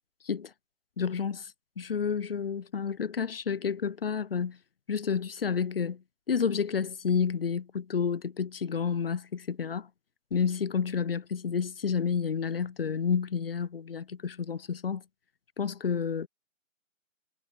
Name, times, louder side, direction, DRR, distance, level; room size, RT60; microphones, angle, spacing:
voice 1, 1.0-1.5 1.8-4.6 4.9-6.0 6.3-9.9 10.3-15.0 15.6-16.3, left 6 dB, 45° left, 2.3 m, -30 dB
hypercardioid pair, 170°, 40 cm